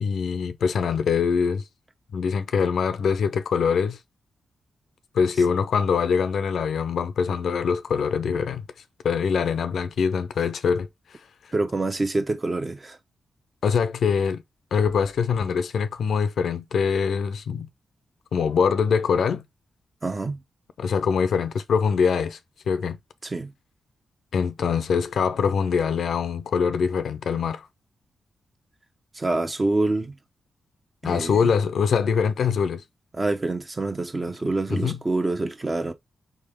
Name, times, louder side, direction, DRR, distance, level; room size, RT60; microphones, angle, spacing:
voice 1, 0.0-1.6 2.1-4.0 5.1-8.6 9.0-11.2 13.6-14.4 14.7-17.7 18.3-19.4 20.8-22.4 22.7-23.0 24.3-27.7 31.0-32.8 34.7-35.0, left 6 dB, 75° left, 0.5 m, -23 dB
voice 2, 11.5-13.0 20.0-20.4 23.2-23.5 29.1-30.1 31.0-31.5 33.1-35.9, right 2 dB, 35° right, 0.9 m, -26 dB
3.8 x 3.5 x 3.4 m
supercardioid pair, 50°, 0 cm